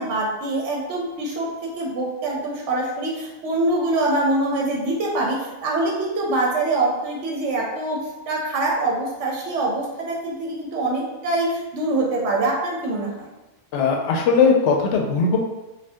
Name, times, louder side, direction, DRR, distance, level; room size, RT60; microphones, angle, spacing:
voice 1, 0.0-1.5 1.8-8.0 8.3-13.3, right 2 dB, 75° right, -2 dB, 0.9 m, -24 dB
voice 2, 13.7-15.4, left 5 dB, 75° left, 1 dB, 0.9 m, -19 dB
2.6 x 2.4 x 3.3 m, 1.1 s
omnidirectional pair, 1.2 m